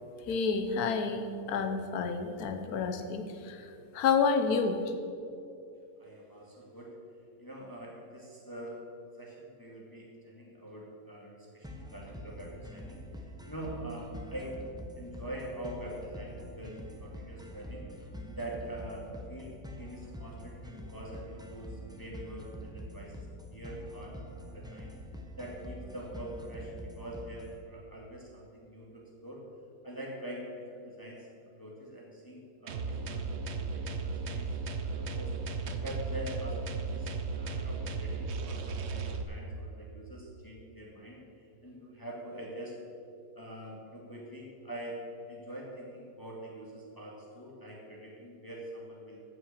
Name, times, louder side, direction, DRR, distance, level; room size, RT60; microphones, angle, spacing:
voice 1, 0.3-3.7 3.9-4.8, left 5 dB, 70° left, 6 dB, 1.4 m, -29 dB
voice 2, 6.0-6.9 7.4-8.8 9.2-14.6 15.0-17.9 18.3-23.3 23.5-24.2 24.5-24.9 25.4-29.4 29.8-31.3 31.6-34.5 34.8-35.3 35.8-42.7 43.3-45.0 45.3-49.2, right 1 dB, 15° left, -3 dB, 1.8 m, -44 dB
sound 1, 11.6-27.6, equal, 5° right, 0.7 m, -45 dB
sound 2, 32.7-39.2, right 4 dB, 55° right, 0.9 m, -35 dB
15.0 x 6.2 x 6.6 m, 2.6 s
omnidirectional pair, 1.7 m